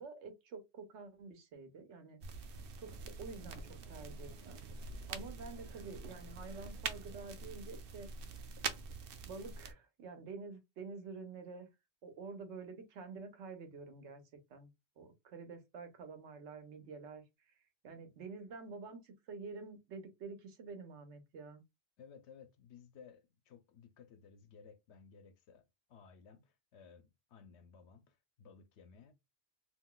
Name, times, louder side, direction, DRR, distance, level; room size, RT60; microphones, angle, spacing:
voice 1, 0.0-2.2 2.8-4.6 5.1-8.1 9.2-11.7 12.0-14.2 14.5-14.7 15.0-17.2 17.8-21.6, right 4 dB, 85° right, 1.0 m, -48 dB
sound 1, 2.2-9.7, right 4 dB, 60° right, 0.7 m, -45 dB
voice 2, 22.0-29.1, left 6 dB, 75° left, 0.9 m, -58 dB
2.6 x 2.2 x 3.7 m
omnidirectional pair, 1.2 m